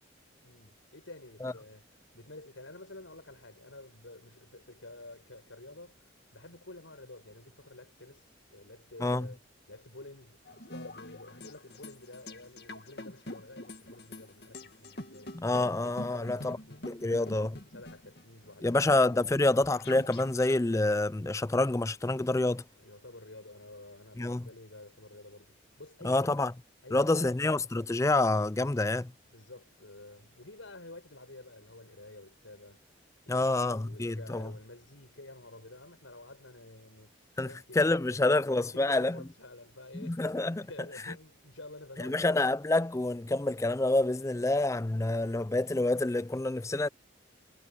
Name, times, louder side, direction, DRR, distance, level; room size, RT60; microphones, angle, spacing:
voice 1, 0.4-9.4 9.7-15.3 16.0-18.9 22.8-26.5 26.8-27.3 29.3-32.8 33.2-37.2 37.4-40.2 40.6-42.6, left 2 dB, 85° left, 6.7 m, -50 dB
sound 1, 10.4-20.6, left 1 dB, 55° left, 2.2 m, -46 dB
voice 2, 15.3-16.6 16.8-17.5 18.6-22.6 24.2-24.5 26.0-26.5 26.9-29.1 33.3-34.5 37.4-37.5 37.8-39.2 39.9-40.7 42.0-46.9, left 2 dB, 15° left, 0.4 m, -27 dB
head